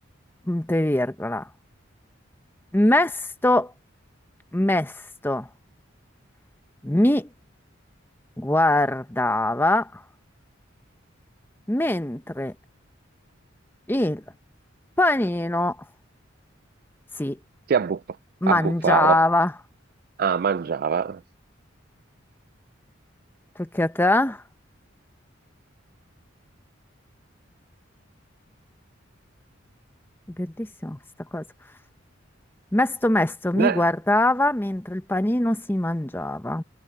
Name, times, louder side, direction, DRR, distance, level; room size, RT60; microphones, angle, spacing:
voice 1, 0.5-1.5 2.7-3.7 4.5-5.5 6.8-7.3 8.4-10.0 11.7-12.5 13.9-14.2 15.0-15.8 17.2-17.4 18.4-19.5 23.6-24.4 30.4-31.0 31.3-31.4 32.7-36.6, left 1 dB, 10° left, 0.8 m, -22 dB
voice 2, 17.7-18.0 18.5-19.2 20.2-21.2 33.6-33.9, right 6 dB, 50° right, 0.3 m, -23 dB
head